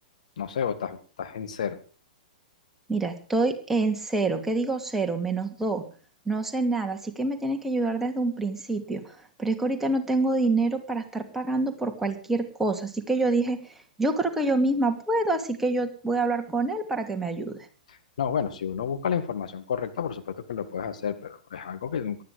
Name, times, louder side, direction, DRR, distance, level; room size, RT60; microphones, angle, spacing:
voice 1, 0.4-1.8 17.9-22.2, left 7 dB, 60° left, 8 dB, 2.1 m, -31 dB
voice 2, 2.9-5.8 6.3-9.0 9.4-13.6 14.0-17.6, right 2 dB, 5° right, 4 dB, 2.6 m, -26 dB
19.0 x 13.0 x 5.1 m, 0.38 s
figure-of-eight pair, 110°, 4 cm